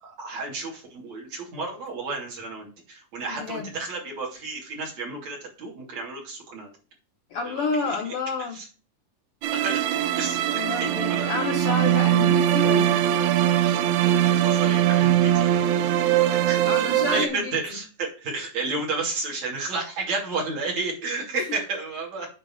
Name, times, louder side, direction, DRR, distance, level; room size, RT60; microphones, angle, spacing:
voice 1, 0.0-6.7 7.5-8.1 8.5-8.7 9.5-10.5 11.0-11.5 14.0-15.6 16.2-22.3, right 3 dB, 50° right, -2 dB, 3.8 m, -32 dB
voice 2, 3.3-3.7 7.3-8.6 10.5-13.1 16.1-16.3 16.7-17.8 21.3-21.6, left 4 dB, 85° left, 3 dB, 1.2 m, -30 dB
sound 1, 9.4-17.3, right 11 dB, 80° right, 1.7 m, -21 dB
8.7 x 4.0 x 7.0 m, 0.36 s
omnidirectional pair, 4.0 m